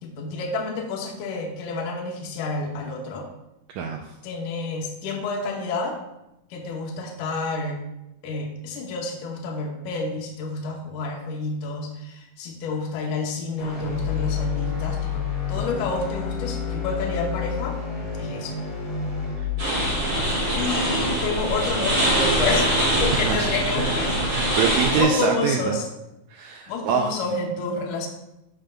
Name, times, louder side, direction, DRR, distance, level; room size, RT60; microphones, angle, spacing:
voice 1, 0.0-3.3 4.2-6.0 6.5-7.8 8.2-17.8 18.2-18.6 20.5-22.7 23.0-24.2 24.4-24.6 25.0-25.9 26.7-28.1, left 3 dB, 75° left, 0 dB, 2.3 m, -29 dB
voice 2, 3.7-4.1 18.2-18.4 19.4-19.5 23.2-24.0 24.3-25.8 26.3-27.2, right 7 dB, 90° right, 2 dB, 1.6 m, -25 dB
sound 1, 13.6-21.7, left 7 dB, 35° left, 2.0 m, -30 dB
sound 2, 19.6-25.0, equal, 35° right, 3.1 m, -23 dB
11.0 x 5.0 x 2.3 m, 0.90 s
omnidirectional pair, 3.8 m